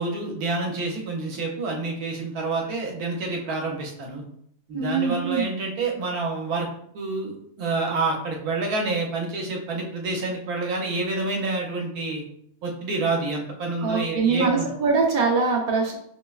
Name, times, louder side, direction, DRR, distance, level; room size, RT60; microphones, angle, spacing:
voice 1, 0.0-4.2 4.7-6.7 6.9-12.2 12.6-14.7, right 3 dB, 70° right, 0 dB, 1.2 m, -28 dB
voice 2, 4.7-5.5 13.8-15.9, right 4 dB, 50° right, -2 dB, 0.6 m, -23 dB
5.3 x 2.1 x 2.3 m, 0.69 s
omnidirectional pair, 1.7 m